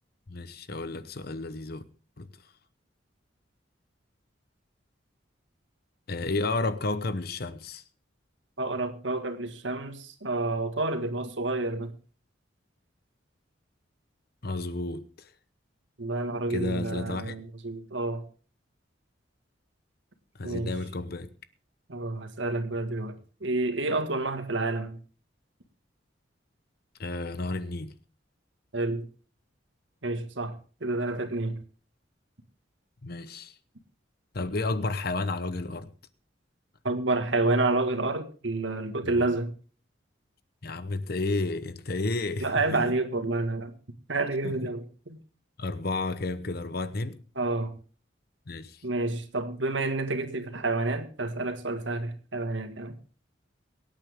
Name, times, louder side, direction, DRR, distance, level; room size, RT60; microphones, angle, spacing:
voice 1, 0.3-1.8 2.2-2.3 6.1-7.8 14.4-15.3 16.5-17.4 20.4-21.3 27.0-28.0 33.0-33.5 34.3-35.9 39.0-39.3 40.6-42.8 44.4-44.5 45.6-47.2 48.5-48.8, left 2 dB, 55° left, 0.9 m, -32 dB
voice 2, 8.6-11.9 16.0-18.2 20.4-20.7 21.9-25.0 28.7-29.1 30.0-30.5 30.8-31.6 36.8-39.5 42.4-43.7 44.1-44.8 45.1-45.2 47.4-47.8 48.8-52.9, right 2 dB, 80° right, 1.9 m, -29 dB
23.5 x 8.9 x 3.6 m
head